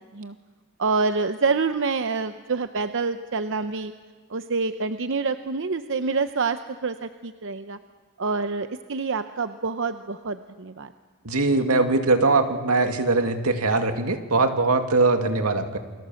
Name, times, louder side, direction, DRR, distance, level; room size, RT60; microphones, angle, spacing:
voice 1, 0.8-3.9 4.3-7.8 8.2-10.9, right 4 dB, 60° right, 9 dB, 0.8 m, -27 dB
voice 2, 11.2-15.8, right 3 dB, 85° right, 6 dB, 2.3 m, -21 dB
29.0 x 23.5 x 7.7 m, 1.5 s
head